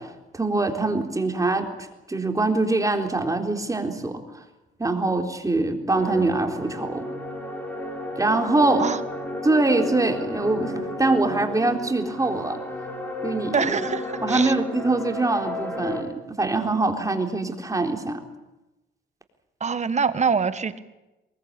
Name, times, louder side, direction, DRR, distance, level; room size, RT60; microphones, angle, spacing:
voice 1, 0.0-1.7 2.1-4.3 4.8-7.1 8.2-8.9 9.4-12.6 13.2-13.8 14.2-16.1 16.4-18.2, right 2 dB, 15° right, 4 dB, 3.9 m, -23 dB
sound 1, 5.9-16.0, left 1 dB, 10° left, 7.8 m, -32 dB
voice 2, 13.5-14.5 19.6-20.8, right 5 dB, 35° right, 12 dB, 1.6 m, -24 dB
23.0 x 21.5 x 8.8 m, 0.99 s
cardioid pair, 90°, 20 cm